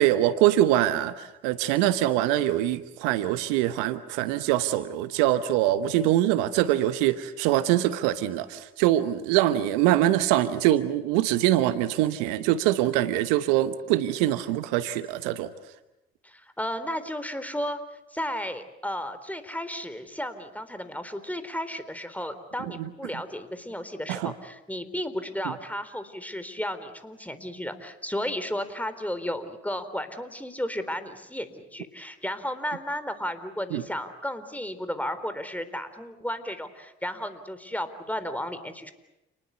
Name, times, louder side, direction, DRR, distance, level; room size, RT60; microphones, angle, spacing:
voice 1, 0.0-15.5 22.6-22.9 24.1-24.3 33.7-33.8, right 13 dB, 80° right, 14 dB, 1.1 m, -24 dB
voice 2, 16.2-17.8 18.1-38.9, equal, 5° left, 11 dB, 3.8 m, -33 dB
29.0 x 20.5 x 8.3 m, 0.95 s
hypercardioid pair, 45°, 31 cm